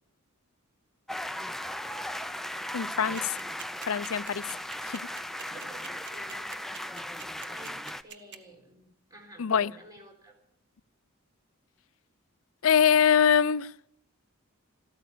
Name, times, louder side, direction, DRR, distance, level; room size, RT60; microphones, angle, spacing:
sound 1, 1.1-8.0, left 1 dB, ahead, 0.6 m, -37 dB
voice 1, 2.7-3.4 3.9-4.4 4.8-5.1 9.4-9.7 12.6-13.7, left 7 dB, 70° left, 0.5 m, -23 dB
sound 2, 3.2-8.4, right 9 dB, 55° right, 1.3 m, -44 dB
voice 2, 5.4-10.4, right 2 dB, 15° right, 4.1 m, -53 dB
15.0 x 13.5 x 6.8 m
head